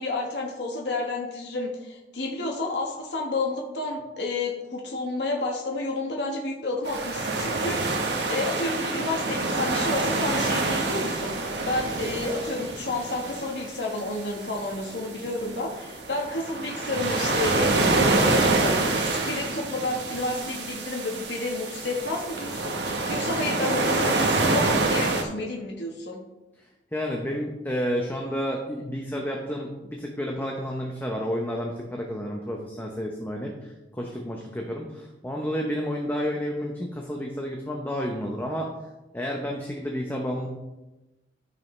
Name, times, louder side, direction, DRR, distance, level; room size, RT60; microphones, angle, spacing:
voice 1, 0.0-26.2, left 2 dB, 75° left, -1 dB, 1.3 m, -31 dB
sound 1, 6.8-25.2, right 2 dB, 70° right, 1.1 m, -27 dB
voice 2, 26.9-38.7 39.1-40.5, equal, 10° left, 0 dB, 0.8 m, -30 dB
13.5 x 5.5 x 3.2 m, 1.0 s
head